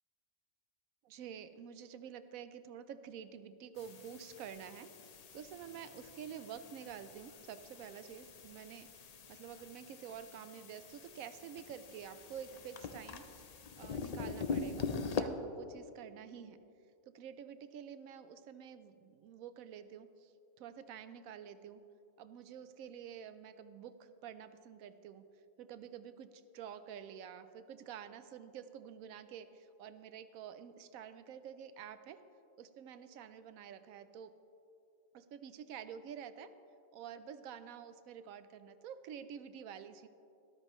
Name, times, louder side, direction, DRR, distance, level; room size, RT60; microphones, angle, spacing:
voice 1, 1.0-4.9 5.3-8.9 9.3-16.6 17.0-20.3 20.6-21.8 22.2-25.2 25.6-32.2 32.6-34.3 35.1-36.5 36.9-40.1, right 8 dB, 85° right, 12 dB, 1.0 m, -49 dB
sound 1, 3.8-15.2, left 5 dB, 75° left, 0.3 m, -44 dB
13.0 x 12.5 x 3.1 m, 2.6 s
omnidirectional pair, 1.4 m